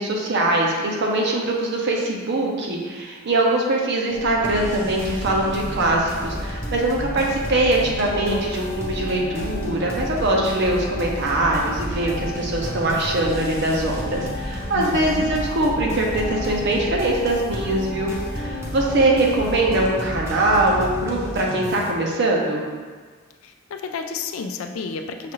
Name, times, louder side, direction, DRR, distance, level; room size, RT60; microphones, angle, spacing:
voice 1, 0.0-22.6, right 2 dB, 60° right, -1 dB, 0.6 m, -22 dB
sound 1, 4.1-19.9, left 3 dB, 35° left, 0.5 m, -35 dB
sound 2, 4.4-21.9, equal, 15° right, 0.6 m, -32 dB
voice 2, 14.8-15.3 23.4-25.3, left 4 dB, 85° left, 5 dB, 0.4 m, -31 dB
5.7 x 2.4 x 3.0 m, 1.5 s
head